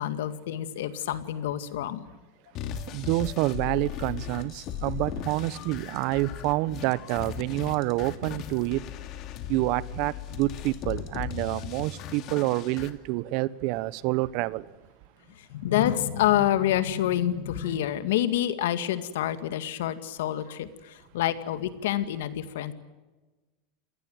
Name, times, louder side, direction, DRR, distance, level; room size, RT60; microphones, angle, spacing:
voice 1, 0.0-2.0 15.4-22.7, left 12 dB, 80° left, 2.1 m, -27 dB
sound 1, 2.5-12.9, left 10 dB, 50° left, 2.8 m, -37 dB
voice 2, 2.9-8.8 9.5-14.6, right 18 dB, 60° right, 1.1 m, -28 dB
28.0 x 18.5 x 9.2 m
supercardioid pair, 110°, 0 cm